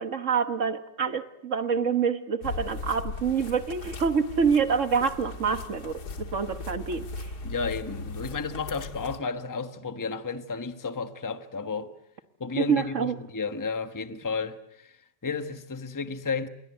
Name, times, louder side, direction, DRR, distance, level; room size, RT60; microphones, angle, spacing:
voice 1, 0.0-7.3 12.6-13.1, right 6 dB, 45° right, 1.5 m, -26 dB
sound 1, 2.4-9.2, left 4 dB, 65° left, 2.1 m, -38 dB
voice 2, 7.4-11.9 12.4-14.9 15.2-16.5, left 4 dB, 15° left, 1.0 m, -32 dB
28.0 x 22.5 x 8.1 m
omnidirectional pair, 1.9 m